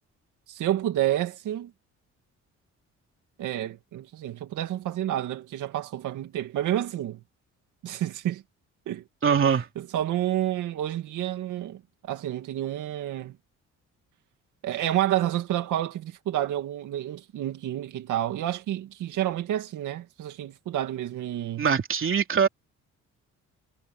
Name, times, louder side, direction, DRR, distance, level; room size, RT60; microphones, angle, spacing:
voice 1, 0.5-1.7 3.4-7.2 7.8-8.4 8.9-9.0 9.5-13.3 14.6-21.7, right 12 dB, 80° right, 2.2 m, -29 dB
voice 2, 9.2-9.6 21.6-22.5, right 7 dB, 45° right, 3.3 m, -22 dB
cardioid pair, 90°, 30 cm